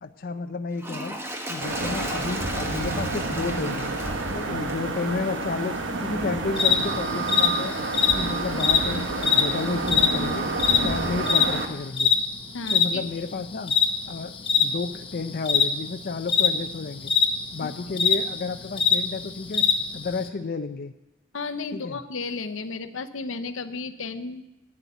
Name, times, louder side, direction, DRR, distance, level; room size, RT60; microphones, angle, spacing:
voice 1, 0.0-1.2 1.5-3.9 4.3-7.7 8.1-10.5 10.8-12.1 12.7-13.7 14.1-17.1 17.5-19.6 19.9-20.9 21.7-22.0, left 4 dB, 50° left, 7 dB, 0.5 m, -31 dB
Toilet flush, 0.7-6.2 6.9-7.0, right 1 dB, 15° right, 1.0 m, -36 dB
sound 1, 1.6-11.7, right 2 dB, 70° right, 1.1 m, -29 dB
sound 2, 6.6-20.3, left 6 dB, 25° left, 0.9 m, -23 dB
voice 2, 12.5-13.0 17.6-17.7 21.3-24.5, left 4 dB, 80° left, 10 dB, 0.7 m, -33 dB
8.9 x 7.9 x 9.1 m, 0.98 s
head